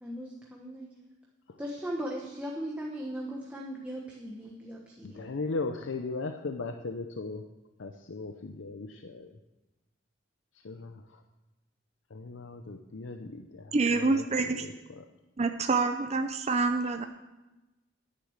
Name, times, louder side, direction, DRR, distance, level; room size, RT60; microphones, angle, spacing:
voice 1, 0.0-0.9 1.6-5.3, equal, 5° right, -2 dB, 1.2 m, -38 dB
voice 2, 5.0-7.4 7.8-9.4 10.6-11.2 12.1-15.1, left 3 dB, 70° left, 6 dB, 0.7 m, -38 dB
voice 3, 13.7-14.7 15.4-17.0, right 3 dB, 35° right, 6 dB, 0.6 m, -27 dB
10.5 x 9.6 x 6.4 m, 1.0 s
head